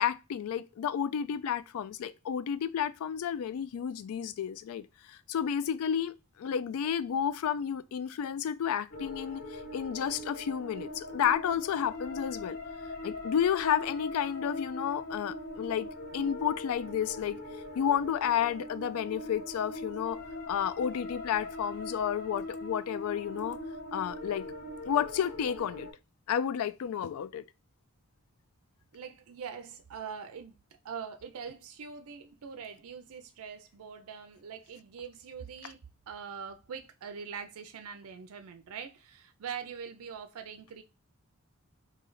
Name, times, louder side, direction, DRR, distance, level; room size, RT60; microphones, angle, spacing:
voice 1, 0.0-12.6 13.0-15.9 16.1-17.4 17.8-20.2 20.5-23.6 23.9-24.5 24.9-25.9 26.3-27.4 35.6-35.7, left 8 dB, 75° left, 0.3 m, -31 dB
sound 1, 8.9-25.9, left 1 dB, 40° left, 0.6 m, -41 dB
voice 2, 28.9-30.6 30.8-40.8, right 6 dB, 75° right, 0.4 m, -43 dB
3.2 x 2.8 x 3.8 m
head